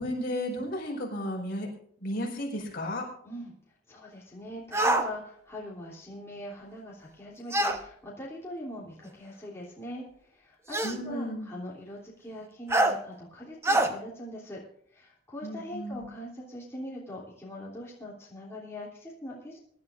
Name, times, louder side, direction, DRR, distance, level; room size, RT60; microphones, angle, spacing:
voice 1, 0.0-1.7 2.0-3.1 10.8-11.5 15.4-16.1, equal, 55° left, -1 dB, 4.7 m, -33 dB
voice 2, 3.9-10.0 10.3-10.8 11.0-14.6 14.9-19.6, left 1 dB, 15° left, -5 dB, 3.2 m, -42 dB
sound 1, 4.7-5.1 7.5-7.8 9.1-9.2 10.7-11.0 12.7-13.0 13.6-13.9, right 1 dB, 15° right, 1.1 m, -24 dB
24.0 x 11.5 x 2.6 m, 0.64 s
head